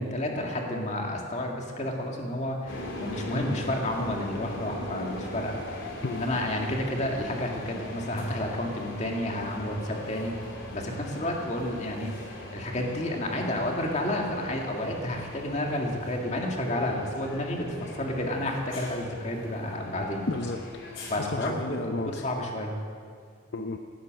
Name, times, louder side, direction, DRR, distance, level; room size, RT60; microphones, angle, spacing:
voice 1, 0.0-10.3 10.7-20.2 21.1-22.7, left 1 dB, 35° left, 1 dB, 2.0 m, -31 dB
sound 1, 2.7-21.1, left 1 dB, 80° left, 3.5 m, -40 dB
voice 2, 20.3-22.2 23.5-23.8, left 3 dB, 60° left, 5 dB, 0.6 m, -33 dB
18.0 x 10.5 x 6.5 m, 2.2 s
head